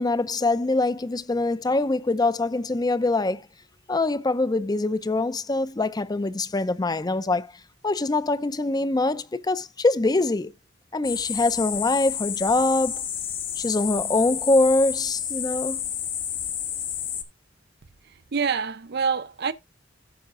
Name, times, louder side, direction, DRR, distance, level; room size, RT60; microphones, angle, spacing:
voice 1, 0.0-3.5 3.9-7.5 7.8-10.5 10.9-13.0 13.6-15.8, left 2 dB, 20° left, 0.5 m, -24 dB
sound 1, 11.0-17.2, left 9 dB, 45° left, 1.2 m, -30 dB
voice 2, 18.0-19.5, right 5 dB, 55° right, 0.6 m, -27 dB
14.0 x 5.8 x 2.4 m
head